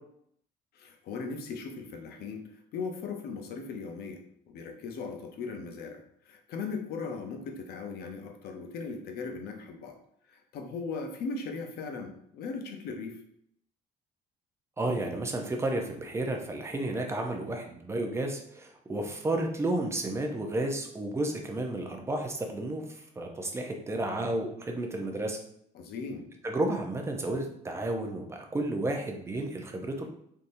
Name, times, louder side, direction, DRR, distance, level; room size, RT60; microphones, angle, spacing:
voice 1, 0.7-10.0 10.3-13.2 25.7-26.3, left 4 dB, 70° left, 4 dB, 0.7 m, -38 dB
voice 2, 14.8-25.4 26.4-30.1, right 1 dB, 15° right, 2 dB, 0.6 m, -32 dB
3.5 x 2.8 x 2.6 m, 0.70 s
cardioid pair, 110°, 17 cm